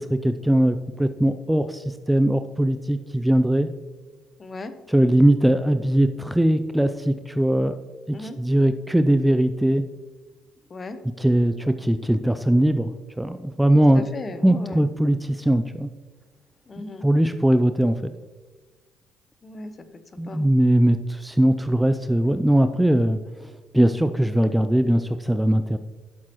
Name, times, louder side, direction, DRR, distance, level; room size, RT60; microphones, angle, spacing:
voice 1, 0.0-3.7 4.9-7.7 8.1-9.9 11.2-12.9 13.2-14.0 14.4-15.9 17.0-18.1 20.2-25.8, right 1 dB, 5° right, 10 dB, 0.4 m, -20 dB
voice 2, 4.4-4.7 8.1-8.4 10.7-11.0 13.9-14.9 16.7-17.1 19.4-19.8 20.1-20.5, left 3 dB, 35° left, 10 dB, 0.9 m, -36 dB
11.5 x 7.3 x 3.0 m, 1.3 s
supercardioid pair, 70°, 0 cm